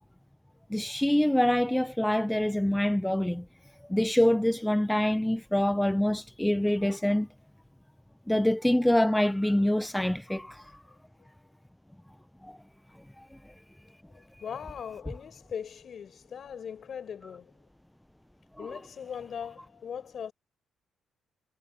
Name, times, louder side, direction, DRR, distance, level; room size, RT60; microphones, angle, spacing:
voice 1, 0.7-3.4 3.9-7.3 8.3-10.8 12.4-12.6 18.6-18.7, left 1 dB, 5° left, 0.7 m, -25 dB
voice 2, 14.1-17.5 18.6-20.3, left 7 dB, 55° left, 4.9 m, -40 dB
cardioid pair, 90°, 0 cm